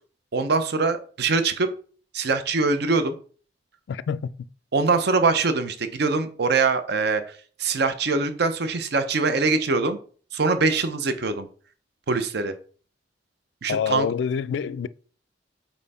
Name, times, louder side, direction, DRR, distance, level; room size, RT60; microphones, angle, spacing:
voice 1, 0.3-1.7 2.1-3.1 4.7-7.2 7.6-10.0 10.3-11.5 12.1-12.5 13.6-14.1, right 4 dB, 65° right, 0.6 m, -23 dB
voice 2, 3.9-4.3 13.7-14.9, left 7 dB, 70° left, 0.3 m, -26 dB
5.5 x 4.3 x 4.1 m
head